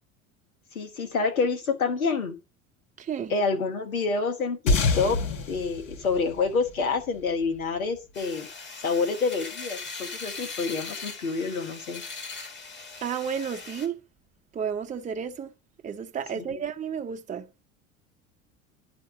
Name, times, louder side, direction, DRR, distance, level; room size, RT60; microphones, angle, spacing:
voice 1, 0.7-2.4 3.3-5.2 5.5-8.5 8.8-12.0 16.3-16.6, left 4 dB, 85° left, 1.4 m, -28 dB
voice 2, 3.0-3.3 13.0-14.0 14.5-15.5 15.8-17.6, right 7 dB, 20° right, 0.7 m, -32 dB
sound 1, 4.7-7.4, left 3 dB, 65° left, 4.9 m, -27 dB
sound 2, 8.1-13.9, left 4 dB, 25° left, 2.2 m, -40 dB
10.5 x 3.5 x 7.2 m
hypercardioid pair, 75°, 41 cm